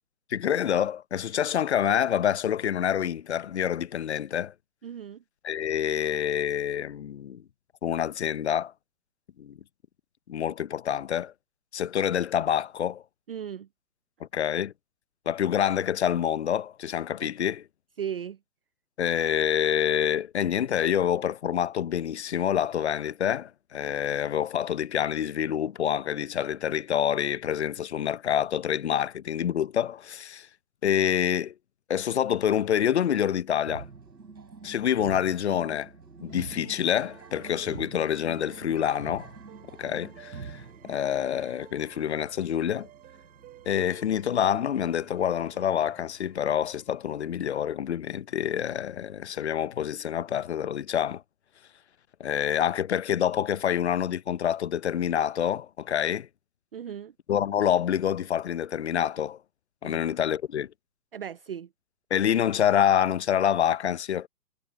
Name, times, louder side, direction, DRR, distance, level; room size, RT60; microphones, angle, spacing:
voice 1, 0.3-4.5 5.4-7.4 7.8-8.7 9.4-9.6 10.3-11.3 11.7-13.0 14.3-14.7 15.3-17.6 19.0-30.5 30.8-31.5 31.9-33.9 34.6-35.9 36.2-39.3 39.8-42.9 43.7-51.2 52.2-56.3 57.3-59.4 59.8-60.7 62.1-64.3, left 9 dB, 40° left, 0.7 m, -27 dB
voice 2, 4.8-5.2 13.3-13.7 17.2-17.3 18.0-18.4 56.7-57.1 59.8-60.0 61.1-61.7, right 9 dB, 35° right, 0.6 m, -36 dB
sound 1, 33.7-46.3, right 4 dB, 90° right, 4.0 m, -46 dB
sound 2, 36.3-47.5, right 14 dB, 15° right, 5.4 m, -54 dB
hypercardioid pair, 150°, 50 cm